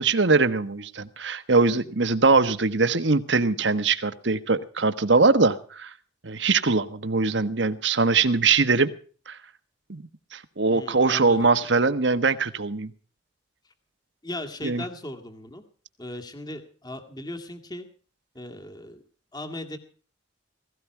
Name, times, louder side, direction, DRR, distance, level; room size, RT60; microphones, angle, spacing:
voice 1, 0.0-5.9 6.2-8.9 9.3-9.4 9.9-10.0 10.3-12.9 14.6-14.8, right 4 dB, 65° right, 11 dB, 1.3 m, -22 dB
voice 2, 10.7-11.5 14.2-15.6 16.0-17.9 18.3-19.0 19.3-19.8, left 1 dB, 20° left, 7 dB, 2.0 m, -37 dB
17.0 x 17.0 x 4.5 m, 0.41 s
head